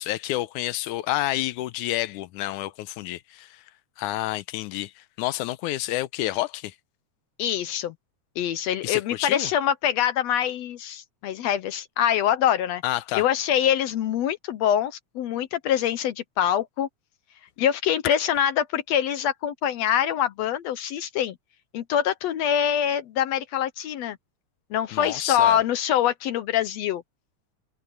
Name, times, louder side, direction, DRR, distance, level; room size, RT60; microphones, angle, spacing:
voice 1, 0.0-3.6 4.0-6.8 8.8-9.5 12.8-13.3 24.9-25.6, left 15 dB, 90° left, 2.2 m, -29 dB
voice 2, 7.4-7.9 8.4-12.8 13.1-16.9 17.6-21.4 21.7-24.2 24.7-27.0, left 10 dB, 70° left, 1.8 m, -24 dB
omnidirectional pair, 3.4 m